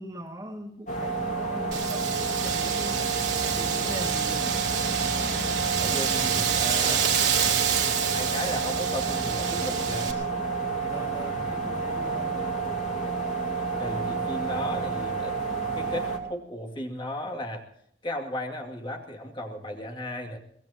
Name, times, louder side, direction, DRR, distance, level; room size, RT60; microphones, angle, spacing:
voice 1, 0.0-3.1 3.4-4.5 10.8-12.6, equal, 20° right, 2 dB, 2.1 m, -40 dB
sound 1, 0.9-16.2, right 4 dB, 45° left, 3.4 m, -30 dB
Wind, 1.7-10.1, right 7 dB, 75° right, 3.4 m, -28 dB
voice 2, 5.7-7.1 8.1-10.1 13.8-15.3 15.7-17.7 18.0-20.4, left 1 dB, 25° left, 2 dB, 2.5 m, -35 dB
23.5 x 19.5 x 2.9 m, 0.69 s
head